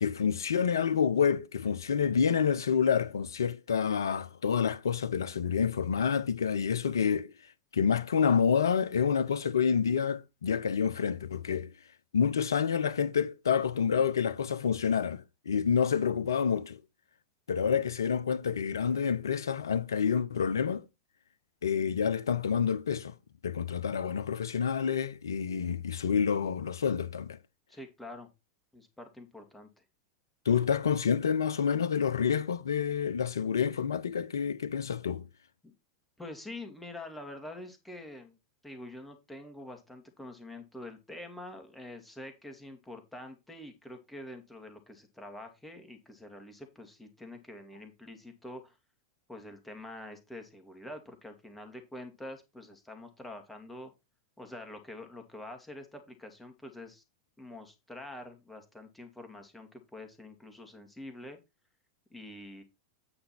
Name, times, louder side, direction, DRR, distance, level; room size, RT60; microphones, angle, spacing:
voice 1, 0.0-7.3 7.7-11.7 12.1-16.8 17.5-20.9 21.6-23.1 23.4-27.4 30.4-35.3, left 7 dB, 80° left, 0.8 m, -28 dB
voice 2, 27.7-28.3 28.7-29.8 35.6-35.7 36.2-38.4 38.6-48.8 49.3-53.9 54.4-57.0 57.4-61.4 62.1-62.6, left 1 dB, 5° left, 2.2 m, -46 dB
8.8 x 5.2 x 4.3 m
hypercardioid pair, 95°, 2 cm